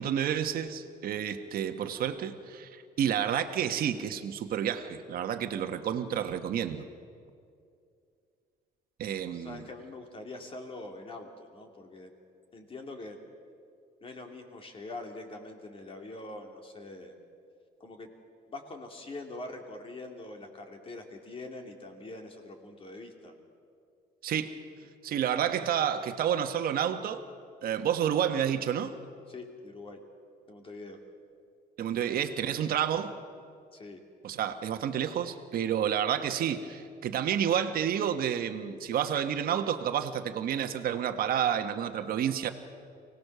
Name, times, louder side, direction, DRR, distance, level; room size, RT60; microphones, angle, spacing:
voice 1, 0.0-6.8 9.0-9.6 24.2-24.5 25.0-27.2 27.6-28.9 31.8-33.1 34.2-42.5, right 9 dB, 60° right, 7 dB, 1.3 m, -30 dB
voice 2, 9.2-12.1 12.5-13.2 14.0-17.1 17.8-18.1 18.5-23.3 29.3-30.0 30.5-31.0 33.7-34.0, left 2 dB, 30° left, 3 dB, 2.9 m, -44 dB
24.5 x 18.0 x 6.8 m, 2.4 s
cardioid pair, 110°, 17 cm